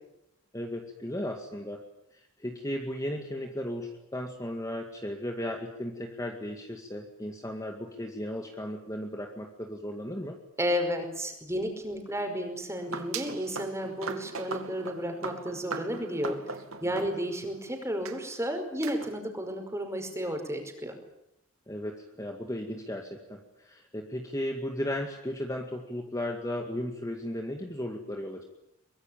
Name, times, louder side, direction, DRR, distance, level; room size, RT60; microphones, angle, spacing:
voice 1, 0.5-1.8 2.1-10.4 16.8-17.0 21.7-28.4, left 1 dB, 15° left, 3 dB, 2.1 m, -35 dB
voice 2, 10.6-16.4 16.8-21.0, equal, 15° right, 5 dB, 5.1 m, -32 dB
sound 1, 12.8-17.6 18.1-18.2 18.8-19.2, right 4 dB, 80° right, 2.6 m, -39 dB
23.5 x 22.5 x 9.0 m, 0.80 s
head